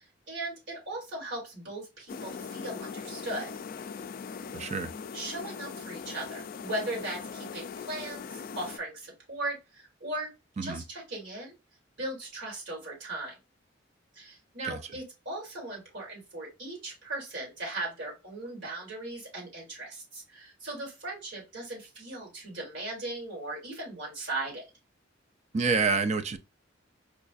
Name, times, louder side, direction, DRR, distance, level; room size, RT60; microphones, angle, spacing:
voice 1, 0.0-3.5 5.1-10.3 10.6-11.5 12.0-13.3 14.1-24.7, right 2 dB, 65° right, 2.2 m, -38 dB
sound 1, 2.1-8.8, left 6 dB, 45° left, 0.3 m, -40 dB
voice 2, 4.5-4.9 10.6-10.8 14.6-14.8 25.5-26.4, right 4 dB, 35° right, 0.4 m, -27 dB
4.8 x 2.4 x 2.4 m
head